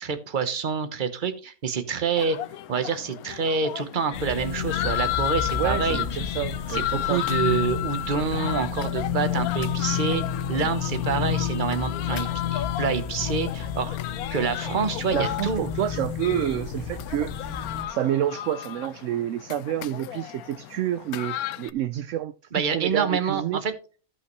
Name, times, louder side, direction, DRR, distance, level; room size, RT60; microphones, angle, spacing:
voice 1, 0.0-2.4 2.7-6.0 6.7-10.2 10.5-14.0 14.3-15.7 22.5-23.7, right 6 dB, 35° right, 1.0 m, -27 dB
sound 1, 2.2-21.7, left 14 dB, 75° left, 1.0 m, -34 dB
sound 2, 4.1-17.8, left 8 dB, 55° left, 1.3 m, -30 dB
voice 2, 5.5-7.2 15.1-17.5 17.9-23.6, right 11 dB, 70° right, 0.8 m, -29 dB
14.0 x 5.6 x 3.1 m
omnidirectional pair, 1.6 m